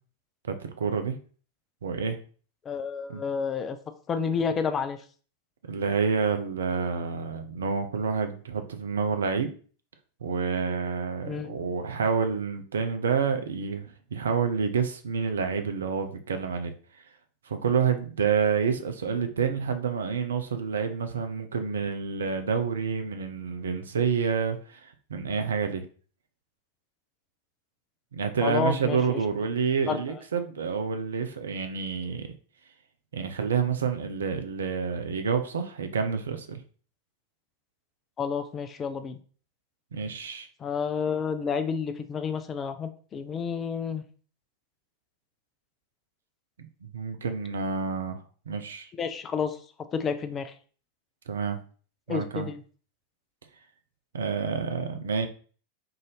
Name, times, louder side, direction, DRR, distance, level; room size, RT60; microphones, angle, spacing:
voice 1, 0.5-1.2 1.8-2.2 3.1-3.2 5.7-9.5 10.2-16.7 17.5-24.8 25.1-25.8 28.1-32.3 33.1-36.6 39.9-40.5 46.6-48.2 48.5-48.9 51.3-51.6 52.1-52.5 54.1-55.3, right 6 dB, 65° right, 7 dB, 0.5 m, -28 dB
voice 2, 2.7-3.8 4.1-5.0 11.3-11.5 28.4-29.2 29.9-30.2 38.2-39.2 40.6-44.0 49.0-49.6 49.9-50.5 52.1-52.6, left 6 dB, 25° left, 8 dB, 0.4 m, -30 dB
3.8 x 2.6 x 3.3 m, 0.41 s
figure-of-eight pair, 90°, 0 cm